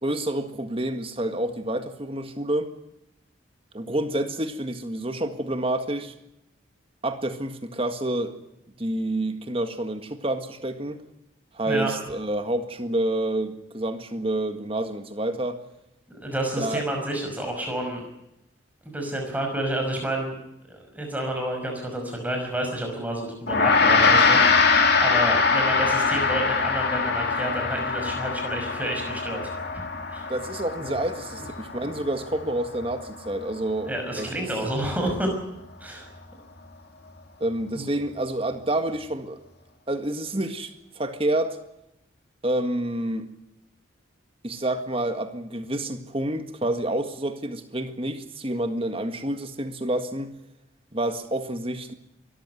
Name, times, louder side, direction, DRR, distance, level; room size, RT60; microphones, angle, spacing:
voice 1, 0.0-2.7 3.7-6.1 7.0-8.4 8.8-11.0 11.5-15.6 16.6-16.8 30.3-34.5 37.4-39.4 39.9-41.6 42.4-43.3 44.4-50.3 50.9-51.9, right 1 dB, 30° right, 1.8 m, -28 dB
voice 2, 16.1-18.0 18.8-20.3 20.7-29.5 30.1-30.3 30.8-30.9 33.9-35.3 35.8-36.1 37.7-37.9, right 1 dB, 10° right, 5.7 m, -29 dB
Gong, 23.5-33.0, left 4 dB, 50° left, 2.7 m, -23 dB
23.5 x 14.0 x 9.3 m
head